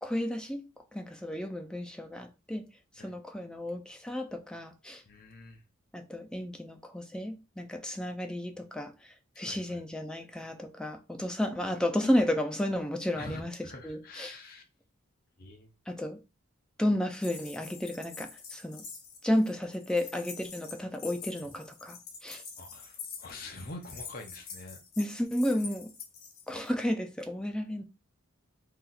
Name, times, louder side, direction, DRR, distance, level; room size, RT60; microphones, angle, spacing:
voice 1, 0.0-2.7 3.0-5.0 5.9-13.5 13.8-14.4 15.9-16.2 16.8-18.8 19.2-22.4 25.0-25.9 26.5-27.8, left 1 dB, 5° left, 0.3 m, -32 dB
voice 2, 5.1-5.6 9.3-9.8 13.2-14.6 15.4-15.7 22.6-24.8, left 2 dB, 45° left, 0.7 m, -45 dB
sound 1, 17.2-26.7, left 5 dB, 80° left, 1.0 m, -46 dB
2.8 x 2.4 x 3.9 m
head